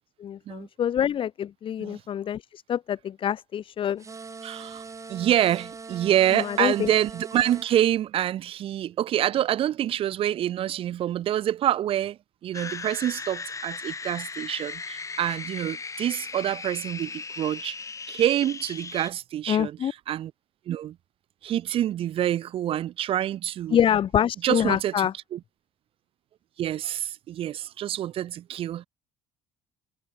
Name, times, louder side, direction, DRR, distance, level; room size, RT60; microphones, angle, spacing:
voice 1, 0.2-4.0 6.3-6.9 19.5-19.9 23.7-25.1, left 9 dB, 50° left, 3.5 m, -26 dB
sound 1, 4.0-7.7, right 4 dB, 30° right, 5.0 m, -41 dB
voice 2, 4.4-4.8 5.1-17.8 18.1-19.7 20.1-20.3 20.7-21.0 21.4-23.8 24.4-24.9 25.3-25.4 26.6-28.9, right 12 dB, 55° right, 1.1 m, -26 dB
sound 2, 12.5-19.1, left 4 dB, 30° left, 7.7 m, -37 dB
supercardioid pair, 75°, 11 cm